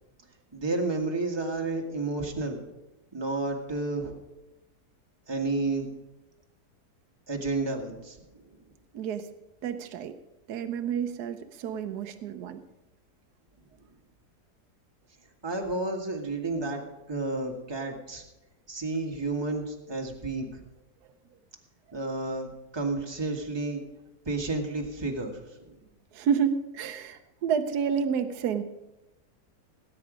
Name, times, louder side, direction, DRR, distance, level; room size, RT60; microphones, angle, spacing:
voice 1, 0.5-2.6 3.1-4.2 5.3-5.9 7.3-8.2 15.4-16.8 17.1-18.2 18.7-20.6 21.9-23.8 24.3-25.4 25.7-25.8, right 2 dB, 15° right, 1 dB, 1.7 m, -31 dB
voice 2, 8.9-9.3 9.6-10.1 10.5-12.6 26.1-28.6, right 7 dB, 75° right, 7 dB, 1.3 m, -29 dB
18.0 x 9.2 x 5.0 m, 0.98 s
omnidirectional pair, 1.8 m